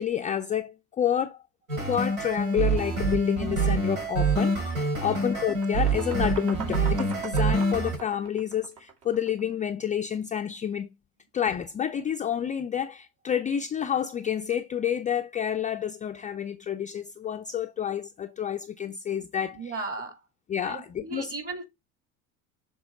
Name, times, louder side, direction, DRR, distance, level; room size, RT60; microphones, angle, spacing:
voice 1, 0.0-1.4 1.9-10.9 11.3-19.6 20.5-21.3, left 9 dB, 20° left, 0.4 m, -29 dB
sound 1, 1.7-8.0, right 3 dB, 85° right, 2.8 m, -26 dB
sound 2, 4.1-4.2 4.6-9.5, right 7 dB, 55° right, 2.8 m, -42 dB
voice 2, 5.0-5.4 19.5-20.2 20.6-21.6, right 3 dB, 35° right, 2.5 m, -36 dB
6.8 x 4.0 x 3.7 m
hypercardioid pair, 70°, 42 cm